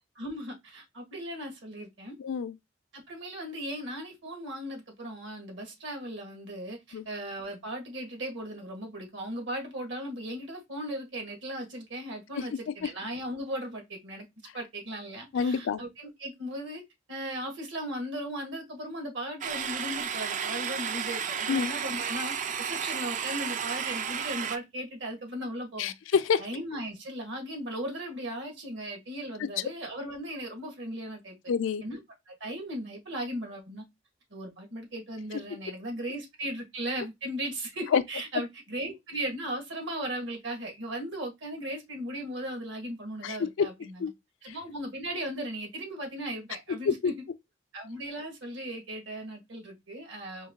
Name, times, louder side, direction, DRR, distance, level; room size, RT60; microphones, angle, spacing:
voice 1, 0.2-2.2 2.9-14.3 14.5-16.8 17.1-25.9 26.4-31.4 31.8-32.0 32.3-33.8 34.3-44.1 44.4-47.1 47.7-50.5, right 1 dB, 70° right, 1.5 m, -37 dB
voice 2, 2.2-2.5 6.9-7.0 15.3-15.8 21.5-21.7 25.8-26.5 31.5-31.8 37.9-38.0 43.2-43.7 44.0-44.1 44.5-44.6, left 6 dB, 75° left, 0.4 m, -27 dB
sound 1, 19.4-24.6, right 7 dB, 40° right, 0.3 m, -32 dB
4.6 x 2.3 x 3.5 m
head